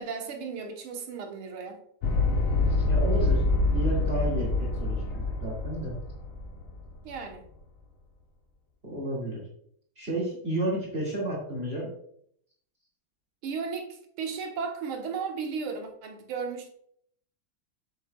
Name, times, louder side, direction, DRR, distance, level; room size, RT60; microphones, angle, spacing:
voice 1, 0.0-1.8 7.0-7.5 13.4-16.7, right 5 dB, 80° right, 4 dB, 1.9 m, -35 dB
sound 1, 2.0-7.2, left 2 dB, 85° left, 1.9 m, -26 dB
voice 2, 2.4-3.4 3.7-6.0 8.8-9.4 10.0-11.9, right 1 dB, 30° right, -3 dB, 2.1 m, -32 dB
7.9 x 7.0 x 2.2 m, 0.67 s
omnidirectional pair, 2.4 m